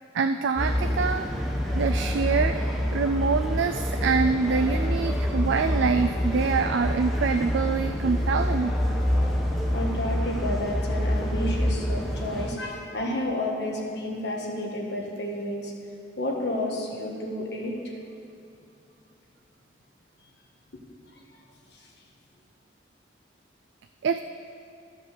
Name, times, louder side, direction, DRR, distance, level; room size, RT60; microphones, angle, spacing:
voice 1, 0.1-2.6 2.9-8.7 24.0-24.2, right 5 dB, 75° right, 7 dB, 0.3 m, -25 dB
sound 1, 0.6-12.5, left 1 dB, ahead, 1.1 m, -27 dB
voice 2, 9.7-15.7 16.2-17.9 21.3-21.4 21.7-21.9, left 1 dB, 65° left, -1 dB, 1.5 m, -31 dB
13.0 x 5.2 x 6.6 m, 2.6 s
head